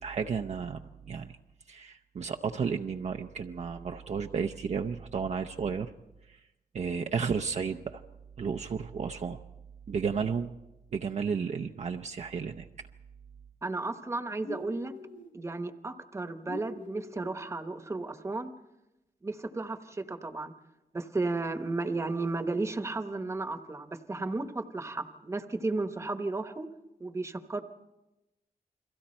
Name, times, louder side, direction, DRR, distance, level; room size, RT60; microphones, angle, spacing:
voice 1, 0.0-1.3 1.7-5.9 6.3-6.4 6.7-8.0 8.4-9.4 9.9-10.5 10.9-12.7, right 6 dB, 50° right, 4 dB, 0.7 m, -33 dB
voice 2, 13.6-14.9 15.3-18.5 19.2-20.5 20.9-26.7 27.0-27.6, right 3 dB, 20° right, 8 dB, 1.1 m, -34 dB
sound 1, 14.4-15.3 16.5-17.4, left 3 dB, 65° left, 1.4 m, -43 dB
30.0 x 22.5 x 4.4 m, 0.97 s
wide cardioid pair, 160°, 15 cm